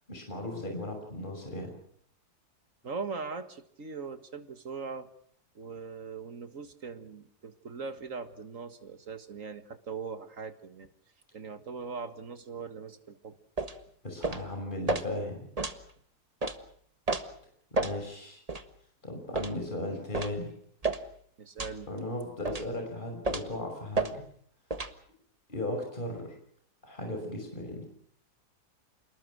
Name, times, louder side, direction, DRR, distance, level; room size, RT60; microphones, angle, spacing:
voice 1, 0.1-1.7 14.0-15.5 17.7-18.4 19.0-20.5 21.9-24.2 25.5-26.2 26.8-27.9, left 1 dB, 30° left, 3 dB, 6.1 m, -36 dB
voice 2, 2.8-5.1 5.6-10.9 11.3-13.4 21.4-21.9, right 5 dB, 55° right, 9 dB, 2.0 m, -40 dB
sound 1, 13.6-13.8 14.2-14.5 14.9-15.1 15.6-15.8 16.4-16.6 17.1-17.2 17.8-18.0 18.5-18.6 19.3-19.6 20.1-20.4 20.8-21.0 21.6-21.8 22.5-22.7 23.2-23.5 23.9-24.1 24.7-24.9, right 3 dB, 25° right, 1.6 m, -31 dB
28.5 x 20.0 x 6.4 m, 0.62 s
omnidirectional pair, 1.7 m